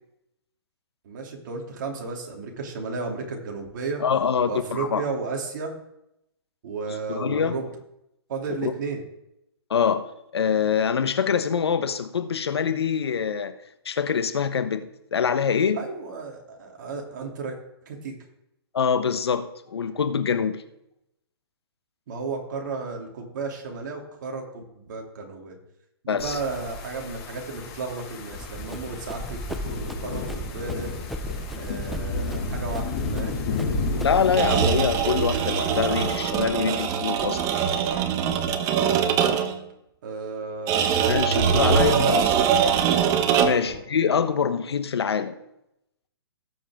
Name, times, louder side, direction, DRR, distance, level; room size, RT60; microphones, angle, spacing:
voice 1, 1.0-4.0 4.5-5.7 6.6-7.7 8.3-9.0 15.8-17.6 17.8-18.1 22.1-25.6 26.0-29.4 29.6-30.9 31.6-33.4 39.2-39.4 40.0-40.9 41.2-42.0 42.3-42.4 43.6-43.8, right 4 dB, 50° right, 3.0 m, -33 dB
voice 2, 4.0-5.0 6.9-7.6 8.6-8.7 9.7-10.1 10.3-13.6 13.8-15.8 18.7-20.6 26.1-26.4 34.0-37.4 41.1-42.3 43.4-45.4, left 7 dB, 75° left, 1.2 m, -24 dB
sound 1, 26.2-36.2, left 3 dB, 40° left, 5.2 m, -32 dB
Run, 28.3-34.4, left 1 dB, ahead, 0.5 m, -36 dB
sound 2, 34.3-39.6 40.7-43.7, right 8 dB, 25° right, 1.0 m, -22 dB
18.0 x 7.4 x 3.7 m
hypercardioid pair, 140°, 13 cm